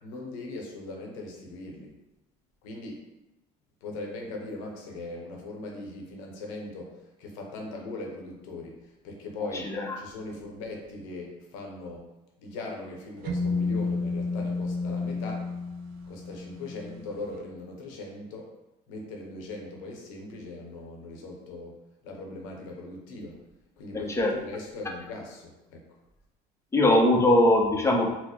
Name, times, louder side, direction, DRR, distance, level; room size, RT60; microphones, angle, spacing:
voice 1, 0.0-1.9 2.6-3.1 3.8-9.7 10.0-12.1 12.4-15.5 16.1-18.5 18.9-21.8 22.0-23.4 23.8-25.9, left 2 dB, 90° left, 0 dB, 0.8 m, -40 dB
voice 2, 9.6-10.0 23.9-24.4 26.7-28.2, left 1 dB, 15° left, 1 dB, 0.6 m, -21 dB
sound 1, 13.3-17.1, left 3 dB, 65° right, 0.5 m, -31 dB
4.1 x 2.1 x 2.9 m, 0.97 s
supercardioid pair, 90°, 17 cm